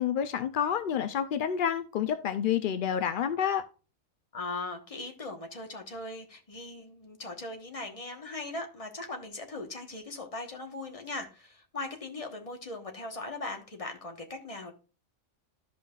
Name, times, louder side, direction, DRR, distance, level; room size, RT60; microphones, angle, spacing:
voice 1, 0.0-3.6, left 8 dB, 70° left, 0.5 m, -29 dB
voice 2, 4.3-14.7, left 2 dB, 30° left, 1.2 m, -39 dB
13.0 x 5.5 x 2.4 m
omnidirectional pair, 1.4 m